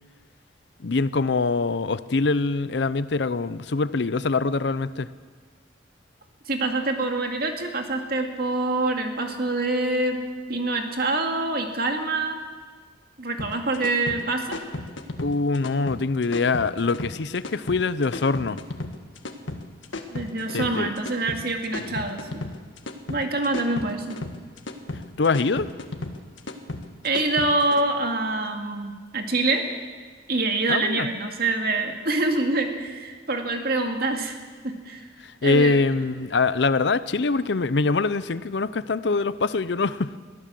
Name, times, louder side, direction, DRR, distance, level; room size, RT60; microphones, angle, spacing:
voice 1, 0.8-5.1 15.2-18.6 20.5-20.9 21.8-21.9 24.9-25.7 30.7-31.1 35.2-40.1, left 3 dB, 65° left, 15 dB, 0.6 m, -24 dB
voice 2, 6.5-10.2 10.5-12.4 13.2-14.6 20.1-22.5 23.1-24.2 27.0-29.6 30.3-34.4 34.6-35.1 35.4-35.8, right 2 dB, 55° right, 4 dB, 2.3 m, -25 dB
sound 1, 13.4-27.8, left 2 dB, 90° left, 1.7 m, -35 dB
22.0 x 15.5 x 7.7 m, 1.5 s
head